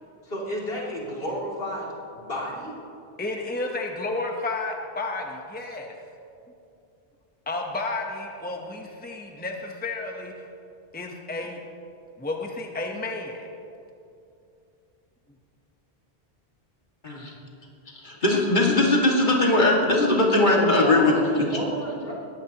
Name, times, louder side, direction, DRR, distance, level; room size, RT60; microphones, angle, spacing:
voice 1, 0.2-2.8 20.4-22.1, equal, 70° left, -5 dB, 3.0 m, -32 dB
voice 2, 3.2-5.9 7.5-10.3 10.9-11.6 12.2-13.5 18.3-18.4, left 2 dB, 10° left, 1 dB, 0.9 m, -32 dB
voice 3, 17.0-17.3 17.9-21.6, left 2 dB, 50° left, -2 dB, 2.3 m, -20 dB
20.5 x 15.5 x 3.0 m, 2.6 s
omnidirectional pair, 1.0 m